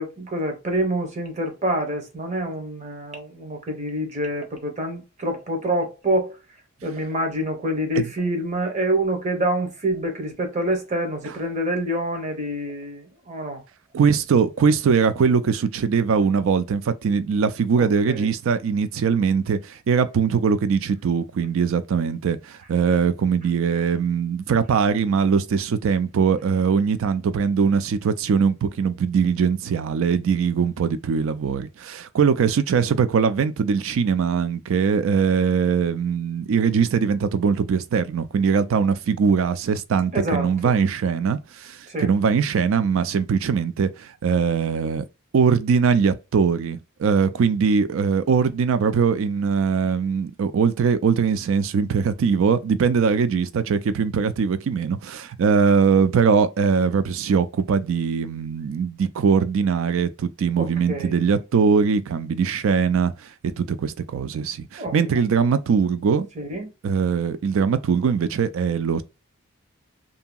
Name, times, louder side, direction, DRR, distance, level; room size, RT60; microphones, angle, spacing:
voice 1, 0.0-6.4 6.8-13.6 17.8-18.3 40.1-40.7 41.9-42.1 60.6-61.1 64.8-64.9 66.4-66.7, right 1 dB, 35° right, 0.9 m, -26 dB
voice 2, 13.9-45.0 45.3-63.1 63.4-66.3 66.8-69.0, right 6 dB, 65° right, 0.4 m, -21 dB
2.7 x 2.7 x 2.2 m
head